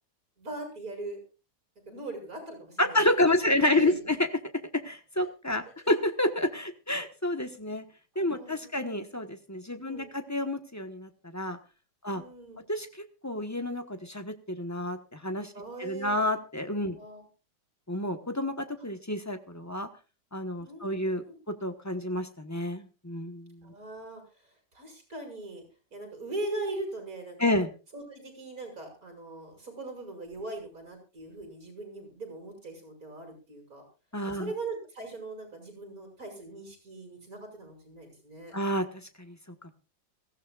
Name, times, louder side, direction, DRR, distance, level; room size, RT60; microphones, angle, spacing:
voice 1, 0.4-1.2 1.9-4.1 8.1-8.8 9.8-10.1 12.1-12.6 15.5-16.2 16.9-17.2 20.7-21.4 23.6-25.6 25.9-27.5 27.9-33.8 34.3-38.6, right 2 dB, 50° right, 3 dB, 6.3 m, -40 dB
voice 2, 2.8-4.2 4.5-7.8 8.1-11.6 12.0-12.2 12.7-12.9 13.2-15.0 15.2-15.5 15.8-17.0 17.9-19.9 20.3-23.6 27.4-27.7 34.1-34.5 38.5-38.8 39.2-39.3 39.6-39.7, left 1 dB, 10° left, 7 dB, 0.9 m, -29 dB
23.5 x 15.5 x 2.4 m, 0.32 s
omnidirectional pair, 2.0 m